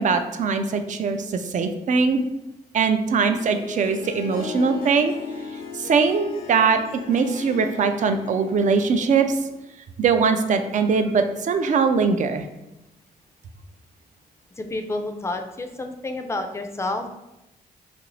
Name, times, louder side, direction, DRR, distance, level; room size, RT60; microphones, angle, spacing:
voice 1, 0.0-2.2 2.7-5.1 5.7-9.4 10.0-12.5, right 5 dB, 50° right, 7 dB, 0.4 m, -21 dB
Harp, 3.2-9.7, left 5 dB, 80° left, 0.5 m, -38 dB
voice 2, 14.6-17.2, left 2 dB, 15° left, 6 dB, 0.4 m, -30 dB
2.9 x 2.5 x 3.1 m, 0.94 s
cardioid pair, 70°, 16 cm